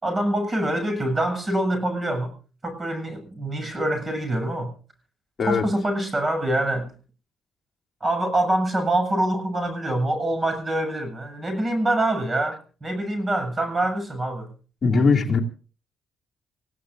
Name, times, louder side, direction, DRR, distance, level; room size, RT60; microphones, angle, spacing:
voice 1, 0.0-2.3 2.6-4.7 5.4-6.9 8.0-14.5 14.9-15.1, right 1 dB, 25° right, 7 dB, 7.6 m, -25 dB
voice 2, 14.8-15.4, left 4 dB, 40° left, 1 dB, 2.6 m, -19 dB
28.0 x 17.0 x 2.6 m, 0.39 s
cardioid pair, 90°, 0 cm